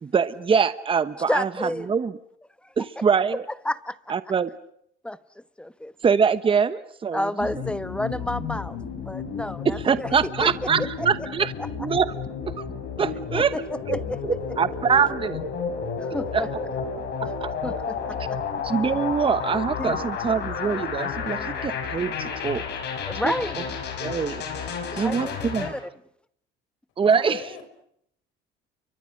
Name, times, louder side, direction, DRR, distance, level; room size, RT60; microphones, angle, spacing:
voice 1, 0.0-2.1 2.8-3.4 4.1-4.5 6.0-7.3 9.8-11.5 11.8-12.1 12.6-12.7 13.0-13.5 13.9-14.0 14.2-15.4 16.3-16.4 17.4-17.5 18.6-22.6 23.2-23.3 24.0-24.4 25.0-25.7 27.0-27.4, right 6 dB, 25° right, 14 dB, 1.1 m, -23 dB
voice 2, 1.3-1.9 2.6-3.0 3.6-4.1 5.0-5.9 7.1-10.5 10.8-11.3 11.6-11.7 13.3-14.0 16.0-16.5 17.6-18.4 19.8-19.9 21.4-21.5 23.1-23.6 24.9-25.8, left 1 dB, 5° left, 14 dB, 1.1 m, -31 dB
sound 1, 7.4-25.7, left 6 dB, 60° left, 6.0 m, -32 dB
voice 3, 27.0-27.6, left 8 dB, 75° left, 7 dB, 5.4 m, -39 dB
30.0 x 24.0 x 6.5 m, 0.72 s
cardioid pair, 100°, 20 cm